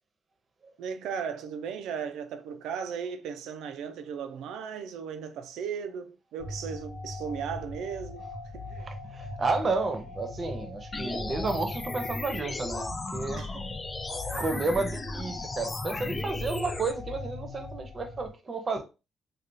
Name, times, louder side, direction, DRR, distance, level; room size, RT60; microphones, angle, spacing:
voice 1, 0.8-8.9 13.4-13.7 14.2-14.5, right 7 dB, 85° right, 0.4 m, -37 dB
sound 1, 6.4-18.3, left 1 dB, 45° left, 0.9 m, -40 dB
voice 2, 8.9-13.5 14.1-18.8, right 3 dB, 35° right, 0.7 m, -32 dB
sound 2, 10.9-16.9, left 3 dB, 25° left, 0.4 m, -36 dB
3.3 x 2.3 x 2.6 m
cardioid pair, 90°, 0 cm